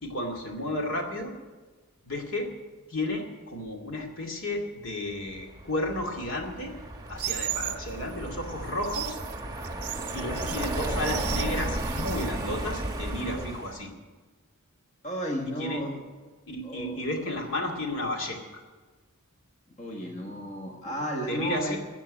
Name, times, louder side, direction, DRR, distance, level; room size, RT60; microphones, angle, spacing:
voice 1, 0.0-1.3 2.0-2.5 2.9-6.7 7.1-9.2 10.1-13.9 15.4-15.8 16.5-18.6 21.3-21.8, left 1 dB, 65° left, 1 dB, 2.4 m, -32 dB
Car passing by, 5.3-13.9, right 1 dB, 20° right, 1.0 m, -34 dB
sound 1, 7.2-7.8 8.7-12.3, right 14 dB, 85° right, 0.5 m, -36 dB
voice 2, 15.0-15.9 16.6-17.0 19.8-21.8, equal, 35° left, 0 dB, 1.5 m, -33 dB
13.5 x 7.4 x 9.9 m, 1.3 s
head